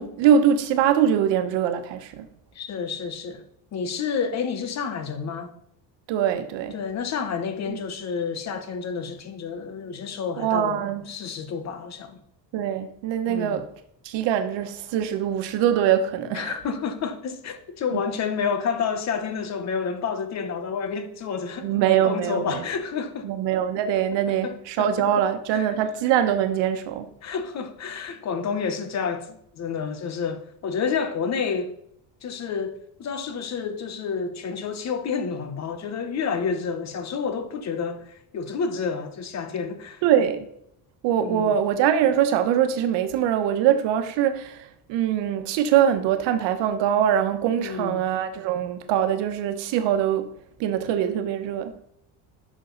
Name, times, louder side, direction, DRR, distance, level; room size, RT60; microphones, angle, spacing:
voice 1, 0.0-2.3 6.1-6.7 7.7-7.8 10.4-11.0 12.5-13.7 14.0-16.6 17.9-18.0 21.6-22.6 23.2-27.1 40.0-40.5 41.0-50.3 50.6-51.7, right 9 dB, 80° right, 1.2 m, -23 dB
voice 2, 2.5-3.4 3.7-5.5 6.7-10.8 11.1-12.2 13.3-13.6 16.2-23.3 24.4-25.8 27.2-31.7 32.2-40.0 41.2-41.5 47.6-48.0, left 6 dB, 40° left, 1.0 m, -30 dB
11.5 x 6.4 x 4.0 m
cardioid pair, 165°, 43 cm